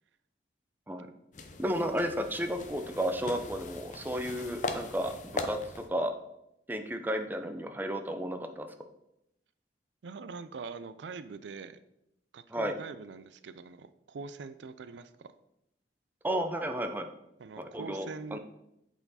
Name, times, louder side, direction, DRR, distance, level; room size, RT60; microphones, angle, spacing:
sound 1, 1.3-5.9, left 3 dB, 45° left, 0.7 m, -40 dB
voice 1, 1.6-5.6 5.9-6.1 6.7-8.7 12.5-12.7 16.2-17.1 17.6-18.4, equal, 10° right, 6 dB, 0.5 m, -33 dB
voice 2, 10.0-11.8 12.3-15.3 17.4-18.4, right 4 dB, 90° right, 13 dB, 0.4 m, -43 dB
8.0 x 4.5 x 4.1 m, 0.83 s
head